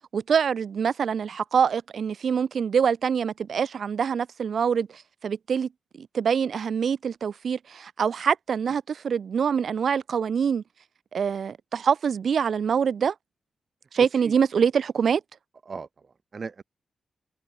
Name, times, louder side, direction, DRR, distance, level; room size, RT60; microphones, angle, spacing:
voice 1, 0.1-4.9 5.2-5.7 6.0-10.6 11.1-13.1 13.9-15.2, right 7 dB, 60° right, 1.1 m, -25 dB
voice 2, 14.0-14.4 15.7-16.6, right 5 dB, 40° right, 3.5 m, -38 dB
wide cardioid pair, 165°, 0 cm